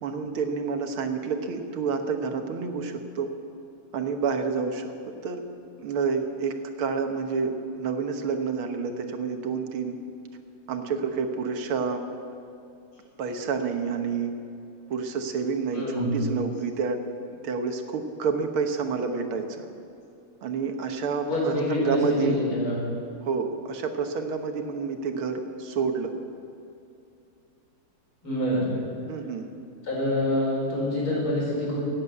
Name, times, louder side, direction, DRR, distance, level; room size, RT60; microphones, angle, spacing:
voice 1, 0.0-3.3 3.9-4.9 5.2-5.4 5.8-10.0 10.7-12.0 13.2-14.3 14.9-17.0 17.4-19.7 20.4-22.4 23.2-26.1 29.1-29.5, right 5 dB, 80° right, 5 dB, 2.1 m, -29 dB
voice 2, 15.7-16.2 21.2-22.7 28.2-28.8 29.8-31.8, left 1 dB, 75° left, -4 dB, 5.7 m, -26 dB
16.5 x 9.6 x 8.2 m, 2.5 s
omnidirectional pair, 2.3 m